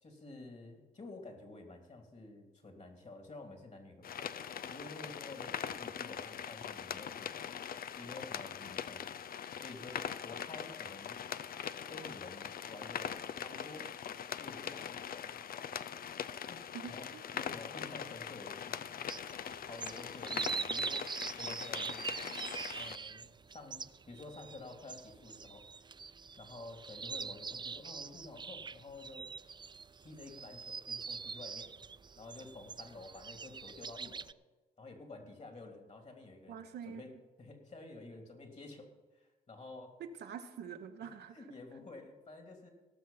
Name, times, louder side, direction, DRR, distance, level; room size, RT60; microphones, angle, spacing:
voice 1, 0.0-4.3 4.7-7.5 8.0-9.1 9.5-11.2 11.9-13.9 14.4-15.4 16.4-19.1 19.7-22.0 22.8-25.9 26.4-29.3 30.0-31.7 32.1-34.3 34.8-37.1 37.4-38.9 39.1-39.9 41.0-42.7, left 2 dB, 40° left, 4 dB, 3.1 m, -50 dB
sound 1, 4.0-23.0, left 8 dB, 60° left, 0.6 m, -42 dB
voice 2, 16.7-17.2 36.5-37.0 40.0-41.4, right 7 dB, 75° right, 6 dB, 1.0 m, -45 dB
sound 2, 19.1-34.3, right 5 dB, 25° right, 0.4 m, -43 dB
17.5 x 6.5 x 5.8 m, 1.2 s
supercardioid pair, 50°, 17 cm